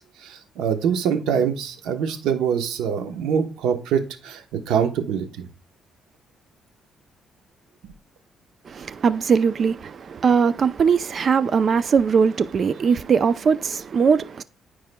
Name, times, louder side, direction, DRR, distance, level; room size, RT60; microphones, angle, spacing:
voice 1, 0.0-4.4 4.7-5.5, right 7 dB, 90° right, 1.0 m, -24 dB
voice 2, 8.7-14.4, right 6 dB, 50° right, 0.5 m, -20 dB
13.5 x 4.7 x 2.2 m
cardioid pair, 90°, 0 cm